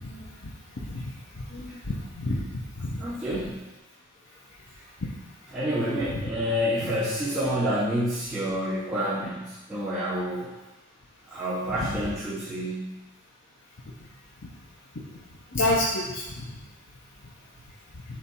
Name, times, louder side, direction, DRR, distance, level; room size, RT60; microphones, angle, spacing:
voice 1, 1.5-2.4 2.8-2.9 6.1-6.2 6.8-6.9 15.5-16.2, left 1 dB, 60° left, -6 dB, 0.9 m, -28 dB
voice 2, 3.0-3.5 5.5-10.5 11.3-13.0, equal, 5° right, -15 dB, 2.1 m, -28 dB
7.2 x 3.4 x 4.5 m, 1.0 s
head